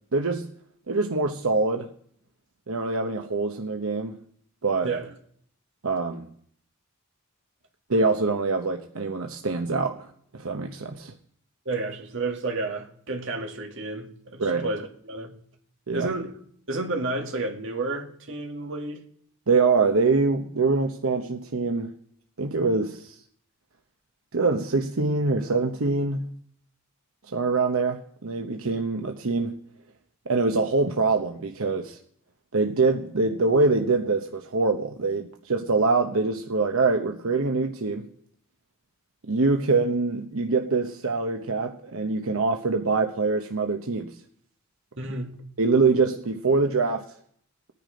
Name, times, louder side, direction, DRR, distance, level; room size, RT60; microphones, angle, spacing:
voice 1, 0.1-0.5 0.9-1.9 2.7-4.2 4.6-4.9 5.8-6.3 7.9-10.1 10.3-11.1 14.4-14.7 15.9-16.1 19.5-21.9 22.4-23.2 24.3-26.3 27.3-29.6 30.3-32.0 32.5-38.1 39.2-44.1 45.6-47.1, right 3 dB, 90° right, 0.9 m, -24 dB
voice 2, 11.7-15.4 15.9-16.4 16.7-19.0 45.0-45.4, right 2 dB, 65° right, 2.1 m, -31 dB
19.5 x 9.7 x 5.1 m
head